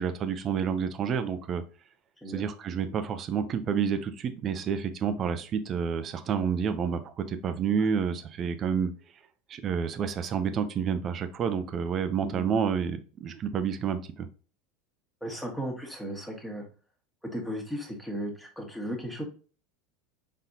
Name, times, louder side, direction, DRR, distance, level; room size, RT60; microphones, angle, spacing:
voice 1, 0.0-1.6 2.3-8.9 9.5-14.3, right 7 dB, 40° right, 10 dB, 0.6 m, -29 dB
voice 2, 15.2-16.6 17.3-19.2, equal, 5° left, 1 dB, 1.5 m, -35 dB
4.0 x 3.7 x 2.7 m, 0.38 s
hypercardioid pair, 85°, 0 cm